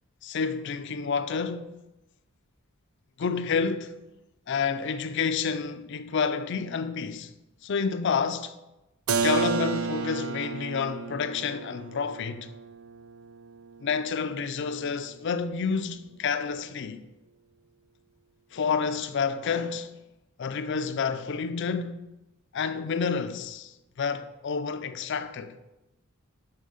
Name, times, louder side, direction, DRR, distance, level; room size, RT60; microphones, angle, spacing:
voice 1, 0.2-1.8 3.2-4.0 4.5-7.3 7.6-8.6 9.2-12.5 13.8-17.0 18.5-19.9 20.4-22.0 22.5-25.6, left 5 dB, 55° left, 0.4 m, -29 dB
Keyboard (musical), 9.1-14.7, right 5 dB, 90° right, 0.5 m, -32 dB
6.6 x 5.5 x 5.0 m
head